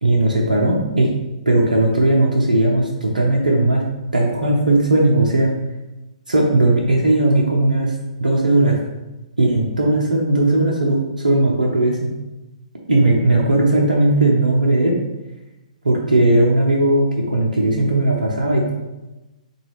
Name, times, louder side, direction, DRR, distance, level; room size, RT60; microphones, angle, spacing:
voice 1, 0.0-1.1 1.5-3.8 4.1-5.5 6.3-7.9 8.2-8.8 9.4-12.1 12.9-15.0 15.9-18.7, right 2 dB, 85° right, -2 dB, 0.6 m, -17 dB
3.8 x 2.3 x 3.2 m, 1.0 s
figure-of-eight pair, 125°, 4 cm